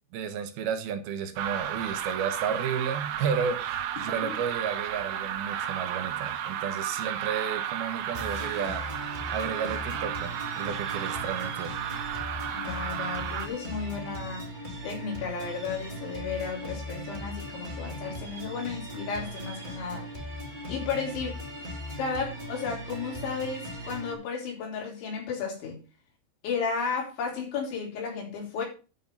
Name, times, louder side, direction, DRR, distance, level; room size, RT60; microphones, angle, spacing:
voice 1, 0.1-8.8 9.3-11.7, right 7 dB, 65° right, 8 dB, 2.8 m, -32 dB
sound 1, 1.4-13.5, right 10 dB, 85° right, 3.5 m, -33 dB
voice 2, 4.1-4.4 12.5-14.5 14.8-20.3 20.7-21.4 22.0-25.8 26.4-28.6, left 5 dB, 90° left, -1 dB, 6.1 m, -33 dB
sound 2, 8.1-24.1, equal, 35° right, 0.7 m, -39 dB
11.0 x 5.8 x 5.5 m, 0.33 s
omnidirectional pair, 5.2 m